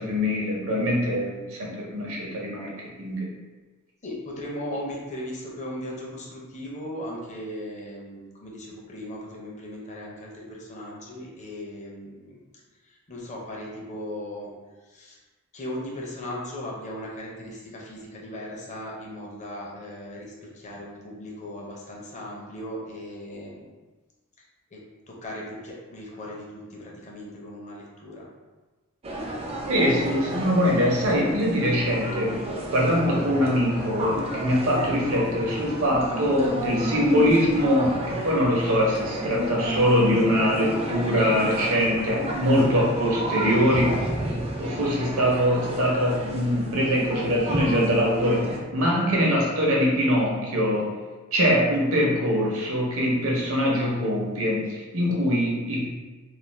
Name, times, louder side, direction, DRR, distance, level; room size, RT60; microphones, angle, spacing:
voice 1, 0.0-3.3 29.7-32.4 32.7-44.1 44.6-51.0 51.3-55.9, equal, 65° right, -3 dB, 0.7 m, -23 dB
voice 2, 4.0-12.5 12.8-14.5 14.8-15.2 15.5-23.7 24.4-24.5 24.7-28.3, left 1 dB, 35° left, -3 dB, 0.5 m, -37 dB
sound 1, 29.0-48.6, right 1 dB, 25° right, 0.4 m, -32 dB
2.4 x 2.3 x 3.0 m, 1.2 s
head